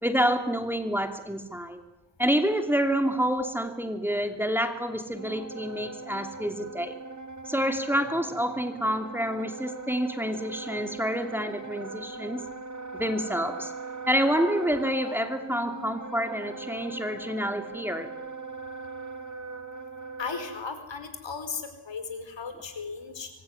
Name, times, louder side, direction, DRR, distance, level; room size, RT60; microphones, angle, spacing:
voice 1, 0.0-1.8 2.2-7.0 7.5-12.5 12.9-13.7 14.1-18.1, equal, 5° right, 6 dB, 2.9 m, -28 dB
Wind instrument woodwind instrument, 5.1-20.6, right 3 dB, 40° right, 3.3 m, -40 dB
voice 2, 20.2-23.3, left 5 dB, 70° left, 9 dB, 4.9 m, -36 dB
26.0 x 23.0 x 9.7 m, 0.98 s
wide cardioid pair, 85°, 45 cm